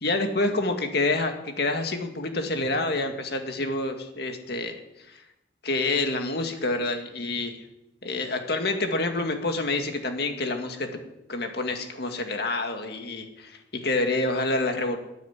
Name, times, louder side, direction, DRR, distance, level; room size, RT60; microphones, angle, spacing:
voice 1, 0.0-4.8 5.1-5.2 5.6-7.6 8.0-10.9 11.3-15.0, left 2 dB, 60° left, 5 dB, 2.1 m, -27 dB
14.0 x 9.7 x 9.5 m, 0.90 s
head